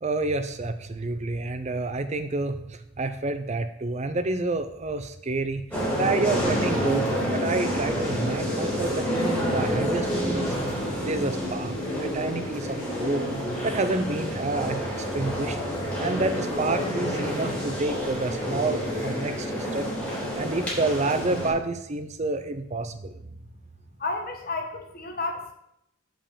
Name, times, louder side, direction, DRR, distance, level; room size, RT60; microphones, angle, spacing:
voice 1, 0.0-5.6 6.0-10.5 11.0-13.2 13.6-15.6 16.0-19.9 20.4-23.2, right 3 dB, 35° right, 10 dB, 0.5 m, -29 dB
sound 1, 5.7-21.5, equal, 5° left, 3.4 m, -28 dB
voice 2, 24.0-25.5, left 3 dB, 45° left, 4 dB, 1.4 m, -31 dB
7.5 x 5.4 x 6.9 m, 0.77 s
head